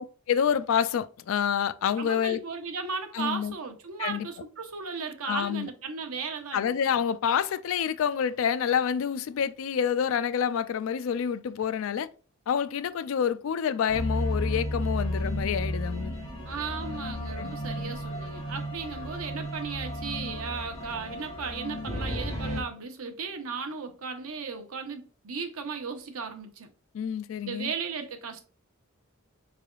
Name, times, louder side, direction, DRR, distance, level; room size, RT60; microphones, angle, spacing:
voice 1, 0.0-2.4 3.1-3.5 4.0-4.3 5.3-5.7 6.5-12.1 12.5-16.1 17.4-17.9 26.9-27.7, left 8 dB, 70° left, 0.3 m, -28 dB
voice 2, 2.0-6.7 16.4-26.7 27.4-28.4, right 5 dB, 85° right, 0.7 m, -36 dB
sound 1, 13.9-22.6, equal, 25° left, 0.9 m, -33 dB
4.4 x 3.3 x 2.3 m
head